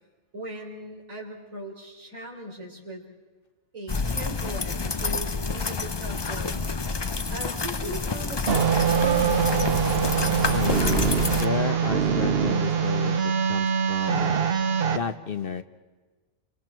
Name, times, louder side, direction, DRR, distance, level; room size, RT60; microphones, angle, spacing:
voice 1, 0.3-3.0 3.7-8.7 9.0-9.5, right 1 dB, 85° right, -1 dB, 4.4 m, -39 dB
sound 1, 3.9-11.5, left 4 dB, 30° left, 0.5 m, -28 dB
sound 2, 8.5-15.0, right 7 dB, 50° right, 1.1 m, -23 dB
voice 2, 10.5-14.4 14.9-15.6, left 6 dB, 50° left, 10 dB, 1.0 m, -31 dB
28.5 x 26.0 x 4.6 m, 1.3 s
omnidirectional pair, 1.4 m